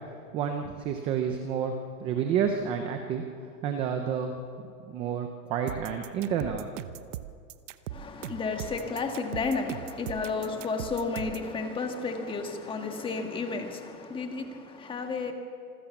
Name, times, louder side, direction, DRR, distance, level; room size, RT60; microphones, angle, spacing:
voice 1, 0.3-1.7 2.0-3.2 3.6-4.3 4.9-6.7, right 7 dB, 10° right, 5 dB, 0.5 m, -29 dB
sound 1, 5.7-11.5, right 13 dB, 50° right, 0.9 m, -39 dB
voice 2, 7.9-15.3, left 4 dB, 10° left, 5 dB, 1.5 m, -32 dB
26.5 x 15.0 x 7.1 m, 2.4 s
hypercardioid pair, 150°, 45 cm